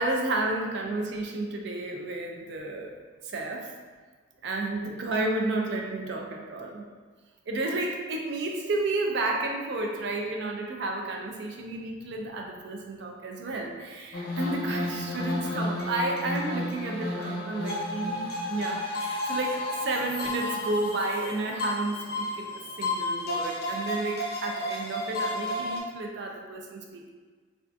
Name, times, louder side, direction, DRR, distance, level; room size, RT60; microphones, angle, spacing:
voice 1, 0.0-2.9 3.2-3.7 4.4-6.8 7.5-27.1, right 2 dB, 60° right, 1 dB, 0.4 m, -31 dB
sound 1, 14.1-25.8, left 1 dB, 50° left, 0.5 m, -32 dB
3.4 x 2.4 x 2.5 m, 1.4 s
head